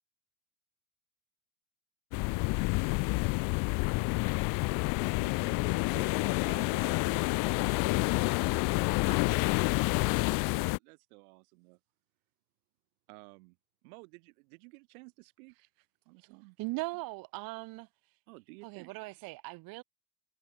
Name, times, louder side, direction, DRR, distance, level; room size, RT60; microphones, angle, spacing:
sound 1, 2.1-10.8, left 28 dB, 50° left, 0.5 m, -29 dB
voice 1, 4.8-6.2 8.7-9.5 10.3-11.8 13.1-13.6 13.8-15.6 16.1-16.6 18.3-19.0, right 28 dB, 80° right, 7.1 m, -54 dB
voice 2, 5.9-9.1, right 7 dB, 25° right, 4.3 m, -54 dB
voice 3, 16.6-17.9 18.6-19.8, right 23 dB, 55° right, 1.0 m, -39 dB
supercardioid pair, 135°, 43 cm